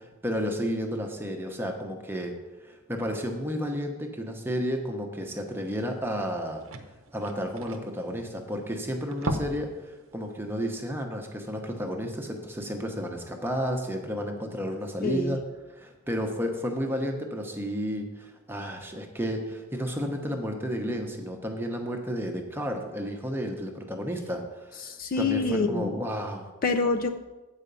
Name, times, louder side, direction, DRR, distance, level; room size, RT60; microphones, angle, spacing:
voice 1, 0.0-2.3 2.6-6.6 7.1-15.4 15.7-26.5, equal, 10° right, 3 dB, 0.9 m, -32 dB
sound 1, 5.6-5.7 6.0-6.1 6.3-8.6 9.0-9.8 10.1-10.3 10.7-10.8, right 1 dB, 60° right, 0.8 m, -35 dB
voice 2, 15.0-15.4 24.8-25.9 26.6-27.1, left 3 dB, 40° left, 4 dB, 0.5 m, -26 dB
8.9 x 4.9 x 6.8 m, 1.2 s
head